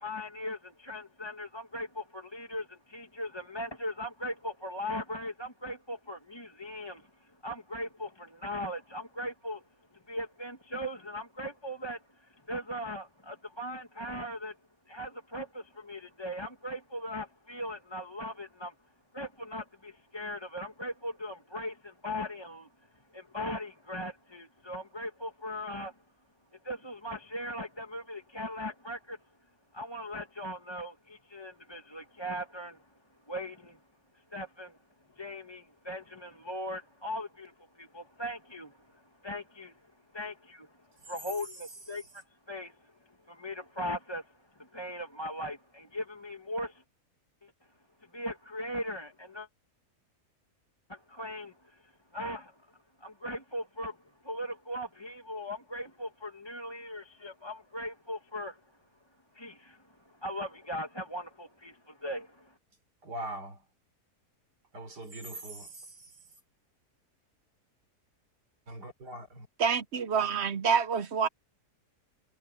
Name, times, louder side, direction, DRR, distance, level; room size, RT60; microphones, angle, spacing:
voice 1, 0.0-9.6 10.1-14.6 14.9-18.7 19.1-22.7 23.1-26.0 26.6-29.2 29.7-32.9 33.3-33.8 34.3-34.8 35.1-39.9 40.1-40.8 41.0-46.8 47.4-47.5 48.1-49.5 50.9-52.6 53.0-54.0 54.2-58.6 59.3-62.5, equal, 15° left, 1.9 m, -39 dB
voice 2, 63.0-63.7 64.7-66.3 68.7-69.5, right 1 dB, 90° right, 5.1 m, -42 dB
voice 3, 69.6-71.3, right 6 dB, 50° right, 0.9 m, -27 dB
omnidirectional pair, 1.7 m